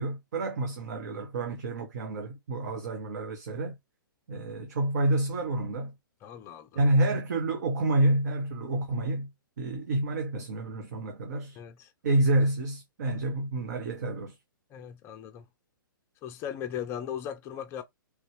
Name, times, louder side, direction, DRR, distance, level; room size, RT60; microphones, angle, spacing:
voice 1, 0.0-3.8 4.3-5.9 6.7-9.3 9.6-11.6 12.0-14.4, right 1 dB, 50° right, 1.0 m, -28 dB
voice 2, 6.2-6.8 11.6-11.9 14.7-15.4 16.2-17.8, left 9 dB, 20° left, 0.5 m, -38 dB
4.3 x 3.4 x 3.1 m
figure-of-eight pair, 115°, 11 cm